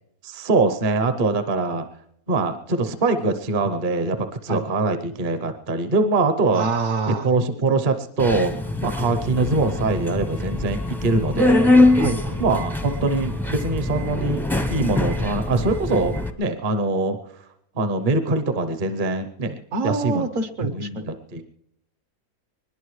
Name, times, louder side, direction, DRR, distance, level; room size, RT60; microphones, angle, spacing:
voice 1, 0.2-1.8 2.3-6.7 7.1-8.5 8.8-11.7 12.4-14.4 14.7-17.2 17.8-20.3 20.6-21.4, right 3 dB, 40° right, 8 dB, 0.8 m, -23 dB
voice 2, 6.5-7.3 12.0-12.4 19.7-21.1, right 3 dB, 60° right, 9 dB, 1.3 m, -26 dB
Subway metro underground, 8.2-16.3, left 2 dB, 5° left, 0.3 m, -23 dB
22.5 x 20.5 x 3.2 m, 0.76 s
omnidirectional pair, 1.6 m